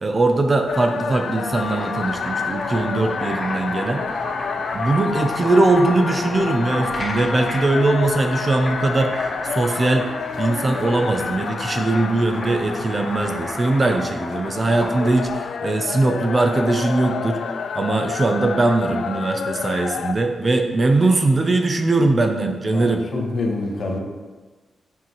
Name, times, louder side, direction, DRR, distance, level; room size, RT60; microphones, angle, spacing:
voice 1, 0.0-4.1 4.7-10.1 10.4-17.4 17.7-23.0, right 2 dB, 30° right, 5 dB, 0.5 m, -20 dB
sound 1, 0.7-20.1, left 6 dB, 70° left, 0.3 m, -29 dB
Boiling, 1.4-15.4, left 1 dB, 25° left, 2.2 m, -33 dB
voice 2, 22.7-24.0, left 2 dB, 55° left, 0 dB, 1.1 m, -26 dB
7.4 x 5.5 x 3.1 m, 1.3 s
wide cardioid pair, 135°, 0 cm